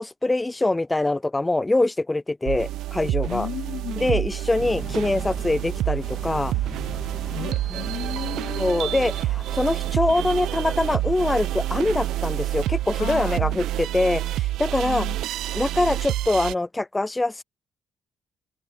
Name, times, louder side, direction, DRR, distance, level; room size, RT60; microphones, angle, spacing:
voice 1, 0.0-3.5 4.0-6.5 7.7-7.8 8.6-15.1 15.5-17.4, left 2 dB, 15° left, 0.3 m, -24 dB
sound 1, 2.5-16.5, right 14 dB, 85° right, 0.5 m, -28 dB
Sliding door, 3.2-4.1 4.7-4.8 5.4-10.2, right 7 dB, 50° right, 4.7 m, -58 dB
voice 2, 3.3-4.2 7.3-9.0 13.0-13.6 14.8-15.2, left 12 dB, 75° left, 0.6 m, -35 dB
sound 2, 4.6-13.5, left 4 dB, 30° left, 2.3 m, -42 dB
cardioid pair, 90°, 0 cm